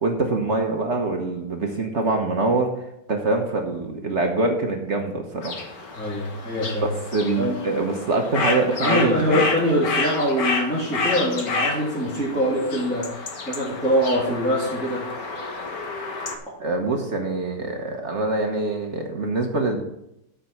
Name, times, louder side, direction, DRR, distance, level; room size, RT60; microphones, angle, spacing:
voice 1, 0.0-6.0 6.8-9.5 16.6-19.8, right 2 dB, 45° right, 3 dB, 1.3 m, -24 dB
sound 1, 5.4-16.4, left 3 dB, 55° left, 1.7 m, -30 dB
voice 2, 6.0-6.9 7.4-7.6 8.8-13.1 13.5-15.0, equal, 5° left, -9 dB, 3.2 m, -23 dB
12.5 x 5.3 x 5.8 m, 0.83 s
omnidirectional pair, 1.9 m